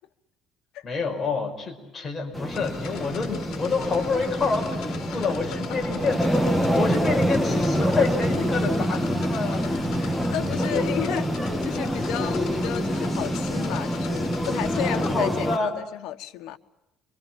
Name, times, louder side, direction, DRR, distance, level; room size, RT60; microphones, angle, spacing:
voice 1, 0.8-9.6 10.6-10.9 15.0-15.7, left 4 dB, 25° left, 5.4 m, -28 dB
sound 1, 2.3-15.6, equal, ahead, 1.6 m, -26 dB
sound 2, 2.5-15.1, left 9 dB, 60° left, 3.4 m, -42 dB
voice 2, 9.6-11.2 11.6-16.6, left 13 dB, 85° left, 1.5 m, -33 dB
28.0 x 24.5 x 7.5 m
cardioid pair, 160°, 0 cm